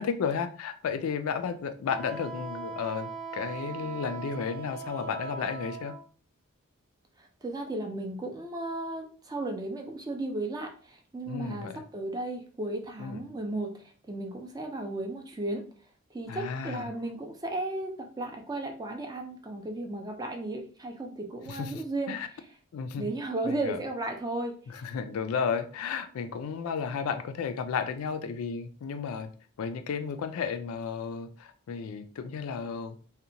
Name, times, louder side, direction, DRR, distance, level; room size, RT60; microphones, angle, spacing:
voice 1, 0.0-5.9 11.3-11.8 13.0-13.2 16.3-16.9 21.5-21.8 22.1-22.3 22.7-23.1 23.4-23.8 24.7-29.3 29.6-33.0, left 6 dB, 75° left, 9 dB, 0.3 m, -33 dB
Wind instrument woodwind instrument, 1.9-6.0, right 5 dB, 40° right, 0.7 m, -39 dB
voice 2, 7.2-15.6 16.1-22.2 23.0-24.8, right 2 dB, 15° right, 3 dB, 0.3 m, -35 dB
2.8 x 2.1 x 2.6 m, 0.41 s
head